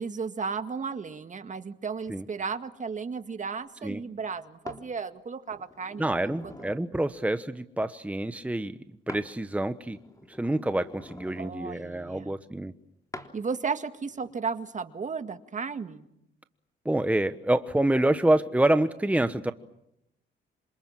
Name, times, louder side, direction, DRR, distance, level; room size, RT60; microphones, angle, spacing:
voice 1, 0.0-6.0 6.4-6.5 11.4-12.4 13.3-16.1, right 5 dB, 40° right, 9 dB, 2.0 m, -34 dB
sound 1, 4.7-4.9 5.5-6.9 9.1-9.3 9.7-11.6 13.1-13.3 14.1-14.3, left 2 dB, 15° left, 3.5 m, -45 dB
voice 2, 6.0-8.8 9.1-10.0 10.3-12.7 16.8-19.5, right 1 dB, 5° right, 10 dB, 1.1 m, -27 dB
27.5 x 27.0 x 7.5 m, 0.82 s
cardioid pair, 90°, 20 cm